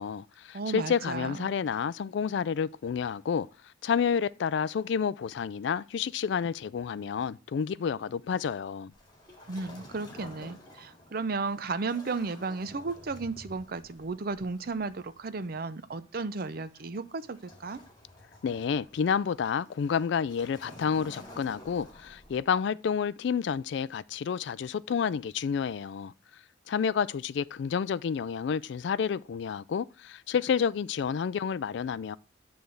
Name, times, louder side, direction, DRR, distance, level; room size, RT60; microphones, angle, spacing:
voice 1, 0.0-3.5 3.8-8.9 18.4-26.1 26.7-32.2, left 6 dB, 60° left, 0.3 m, -30 dB
voice 2, 0.5-1.5 9.5-17.8, right 4 dB, 50° right, 0.5 m, -34 dB
Waves surf, 8.9-22.6, left 1 dB, 20° left, 2.0 m, -52 dB
9.0 x 3.4 x 6.4 m
head